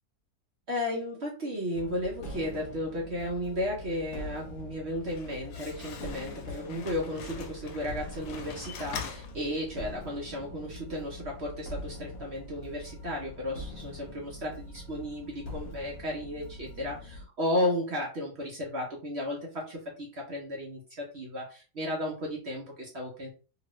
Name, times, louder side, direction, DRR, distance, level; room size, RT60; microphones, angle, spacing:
voice 1, 0.7-23.3, left 1 dB, 50° right, -2 dB, 0.9 m, -34 dB
sound 1, 1.7-17.3, left 1 dB, 60° left, 1.1 m, -43 dB
Slam, 4.9-10.0, left 7 dB, 90° left, 1.2 m, -43 dB
2.9 x 2.5 x 3.0 m, 0.35 s
omnidirectional pair, 1.7 m